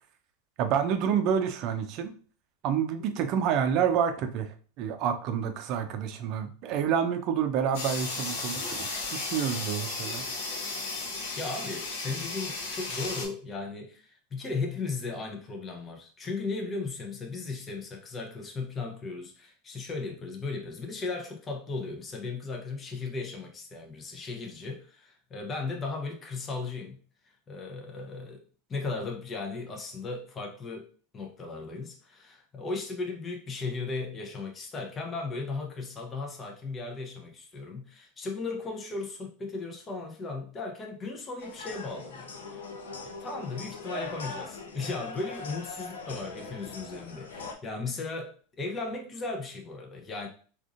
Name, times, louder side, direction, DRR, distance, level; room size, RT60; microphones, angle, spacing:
voice 1, 0.6-2.1 2.6-10.2, right 8 dB, 55° right, 0.5 m, -28 dB
sound 1, 7.7-13.3, left 3 dB, 70° left, 0.9 m, -34 dB
voice 2, 11.4-27.0 27.5-28.4 28.7-42.6 43.1-50.3, left 3 dB, 30° left, 0.7 m, -36 dB
sound 2, 41.4-47.5, left 3 dB, 85° left, 0.5 m, -41 dB
3.6 x 2.5 x 2.5 m
hypercardioid pair, 95°, 0 cm